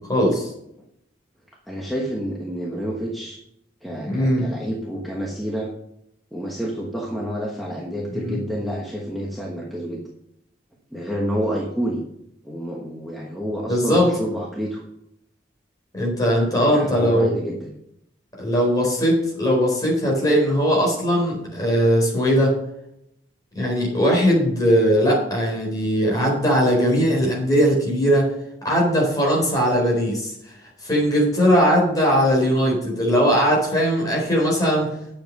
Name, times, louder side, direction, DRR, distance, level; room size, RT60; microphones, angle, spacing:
voice 1, 0.1-0.5 4.1-4.4 8.1-8.4 13.7-14.1 15.9-17.3 18.4-22.5 23.5-28.3 28.6-30.3 30.8-34.9, equal, 20° left, -2 dB, 4.3 m, -19 dB
voice 2, 1.7-3.4 3.8-5.7 6.3-10.0 10.9-12.0 12.4-14.8 16.5-17.7, equal, ahead, -2 dB, 1.2 m, -29 dB
10.0 x 7.4 x 5.4 m, 0.78 s
head